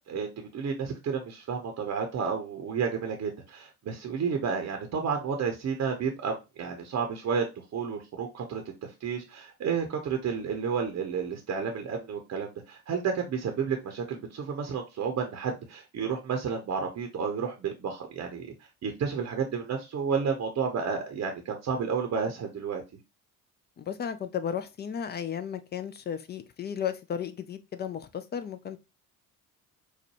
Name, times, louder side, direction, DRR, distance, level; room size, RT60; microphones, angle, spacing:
voice 1, 0.1-7.5 7.7-18.5 18.8-22.8, right 6 dB, 35° right, 0.8 m, -31 dB
voice 2, 23.8-28.8, left 8 dB, 25° left, 0.4 m, -34 dB
4.7 x 2.2 x 2.9 m
figure-of-eight pair, 55°, 45 cm